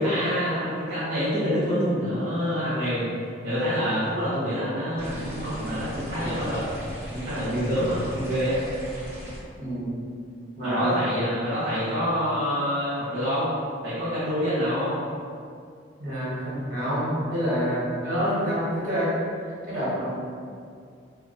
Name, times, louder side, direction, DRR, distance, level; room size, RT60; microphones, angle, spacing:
voice 1, 0.0-3.1 3.4-6.6 7.1-8.6 10.6-13.5 13.8-14.9, equal, 65° right, -12 dB, 1.1 m, -26 dB
sound 1, 5.0-9.4, equal, 15° right, 1.3 m, -38 dB
voice 2, 9.6-9.9 10.6-10.9 16.0-19.1 19.7-20.2, equal, 50° right, -9 dB, 1.5 m, -27 dB
2.8 x 2.6 x 4.1 m, 2.3 s
head